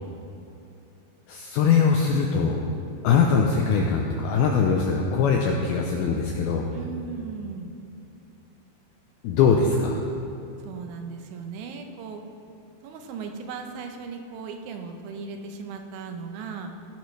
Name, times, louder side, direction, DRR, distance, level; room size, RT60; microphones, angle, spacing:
voice 1, 1.3-2.6 3.0-6.7 9.2-10.0, left 5 dB, 85° left, 1 dB, 2.2 m, -22 dB
voice 2, 6.7-7.7 10.6-12.2 12.8-16.7, right 5 dB, 85° right, 4 dB, 3.3 m, -37 dB
17.0 x 10.5 x 3.3 m, 2.7 s
omnidirectional pair, 5.2 m